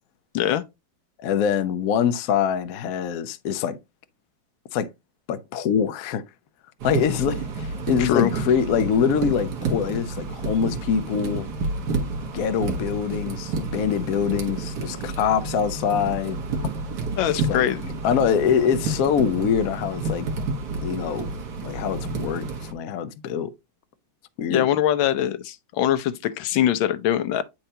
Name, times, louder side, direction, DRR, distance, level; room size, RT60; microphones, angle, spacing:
voice 1, 1.2-3.8 4.7-4.9 5.3-6.2 6.8-11.4 12.3-16.4 17.5-17.6 18.0-20.3 20.8-21.3 21.6-23.5 24.4-24.7, left 7 dB, 70° left, 0.8 m, -24 dB
sound 1, 6.8-22.7, right 3 dB, 60° right, 1.7 m, -30 dB
voice 2, 8.0-8.3 16.6-16.7 17.2-17.8 24.5-27.4, left 11 dB, 85° left, 1.4 m, -22 dB
8.8 x 4.5 x 2.8 m
omnidirectional pair, 2.1 m